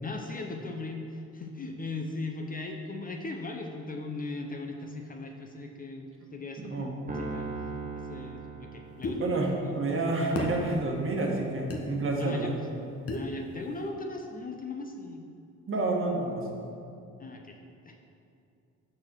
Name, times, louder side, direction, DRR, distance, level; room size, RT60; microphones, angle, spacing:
voice 1, 0.0-7.5 7.9-9.8 12.2-12.5 13.1-15.3 17.2-17.6 17.8-18.0, left 3 dB, 30° left, 3 dB, 0.7 m, -38 dB
voice 2, 6.6-7.0 9.2-12.5 15.7-16.5, right 2 dB, 45° right, 0 dB, 1.3 m, -29 dB
Piano, 7.1-9.5, right 3 dB, 25° right, 1.1 m, -38 dB
sound 1, 9.0-9.2 10.4-10.6 11.7-11.8 13.1-13.3, left 3 dB, 50° left, 1.1 m, -32 dB
6.4 x 4.3 x 6.1 m, 2.6 s
cardioid pair, 90°, 30 cm